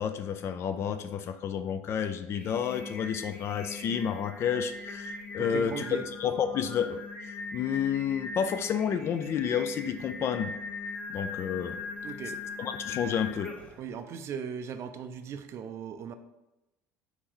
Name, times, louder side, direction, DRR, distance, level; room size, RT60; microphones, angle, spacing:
voice 1, 0.0-5.8 6.2-10.6 11.1-11.8 12.6-13.5, left 8 dB, 45° left, 10 dB, 0.4 m, -30 dB
Singing, 2.1-13.9, left 4 dB, 25° left, 1.0 m, -40 dB
voice 2, 5.4-6.1 12.0-12.4 13.8-16.1, right 7 dB, 50° right, 9 dB, 0.4 m, -38 dB
4.2 x 3.0 x 3.7 m, 0.96 s
hypercardioid pair, 85°, 6 cm